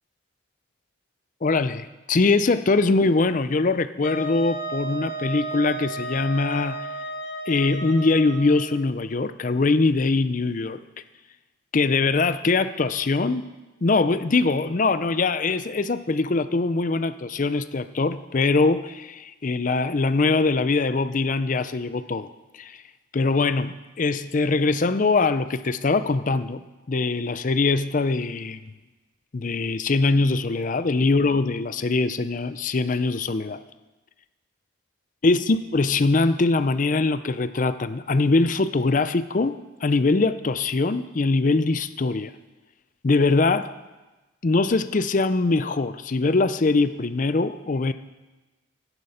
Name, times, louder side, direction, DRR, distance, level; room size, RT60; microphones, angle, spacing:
voice 1, 1.4-6.9 7.5-10.8 11.7-13.5 13.8-22.3 22.5-22.8 23.1-26.6 26.9-28.6 29.3-33.6 35.2-42.3 43.0-43.7 44.4-47.9, left 3 dB, 40° left, 13 dB, 0.5 m, -22 dB
Wind instrument woodwind instrument, 4.0-8.7, right 2 dB, 60° left, 1.3 m, -33 dB
15.0 x 9.9 x 5.7 m, 1.2 s
head